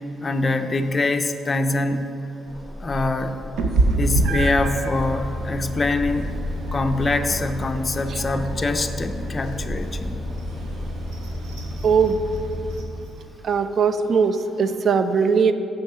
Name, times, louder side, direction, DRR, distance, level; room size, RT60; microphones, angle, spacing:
voice 1, 0.2-2.1 2.8-3.3 4.0-6.4 6.7-10.2, left 2 dB, 30° left, 7 dB, 0.5 m, -24 dB
sound 1, 2.5-11.4, left 1 dB, 5° left, 1.6 m, -36 dB
Meow, 3.6-13.2, right 2 dB, 85° right, 0.8 m, -29 dB
sound 2, 4.3-12.8, left 1 dB, 15° right, 1.0 m, -32 dB
voice 2, 11.8-12.2 13.4-15.5, right 6 dB, 55° right, 11 dB, 0.4 m, -19 dB
6.9 x 5.6 x 5.6 m, 2.8 s
cardioid pair, 90°, 0 cm